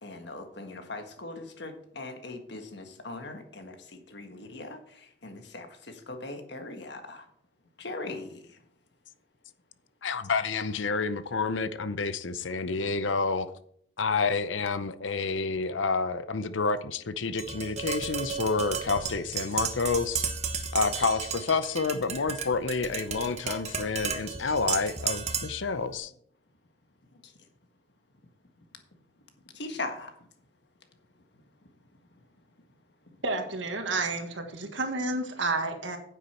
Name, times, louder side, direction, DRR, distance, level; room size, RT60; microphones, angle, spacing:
voice 1, 0.0-7.3 7.8-8.6 27.1-27.3 29.5-30.1 35.1-35.2, left 2 dB, 60° left, 1.6 m, -40 dB
voice 2, 10.0-13.5 14.0-20.2 20.7-26.1, left 4 dB, 80° left, 0.7 m, -29 dB
Tap, 17.4-25.7, right 6 dB, 35° right, 1.0 m, -33 dB
voice 3, 33.2-36.0, right 3 dB, 80° right, 1.7 m, -30 dB
9.5 x 8.4 x 4.4 m
head